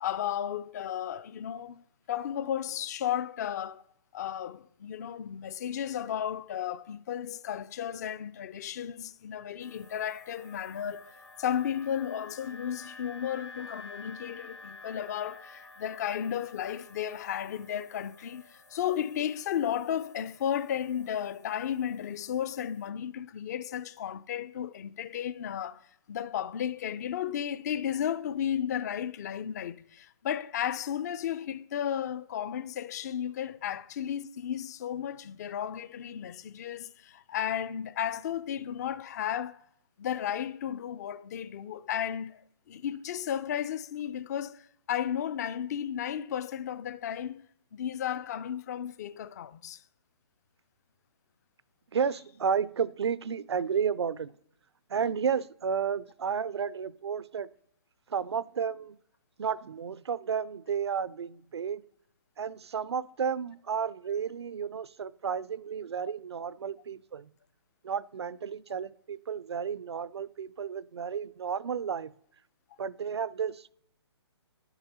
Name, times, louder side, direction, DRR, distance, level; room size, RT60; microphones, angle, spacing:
voice 1, 0.0-3.8 4.1-11.1 11.4-25.8 26.1-39.6 40.0-42.4 42.7-47.5 47.7-49.8, left 9 dB, 35° left, 0.4 m, -34 dB
sound 1, 9.6-22.9, left 3 dB, 80° left, 1.5 m, -51 dB
voice 2, 51.9-54.3 54.9-57.5 58.1-59.0 59.4-61.8 62.4-67.3 67.8-72.1 72.8-73.7, right 7 dB, 65° right, 0.4 m, -32 dB
10.5 x 7.0 x 4.1 m
figure-of-eight pair, 135°, 15 cm